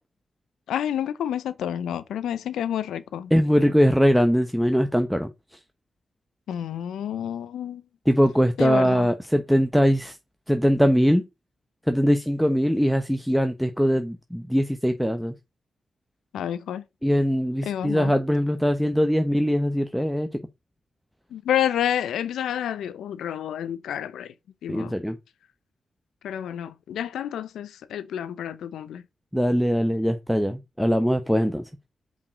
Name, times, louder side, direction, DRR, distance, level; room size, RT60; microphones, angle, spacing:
voice 1, 0.7-3.3 6.5-7.8 8.6-9.1 16.3-16.8 17.6-18.1 21.3-24.3 24.6-25.0 26.2-29.0, left 10 dB, 90° left, 0.7 m, -29 dB
voice 2, 3.3-5.3 8.1-10.2 10.5-11.2 11.9-15.3 17.0-20.3 24.7-25.2 29.3-31.6, equal, ahead, 1.0 m, -21 dB
5.3 x 5.1 x 6.0 m
cardioid pair, 50°, 0 cm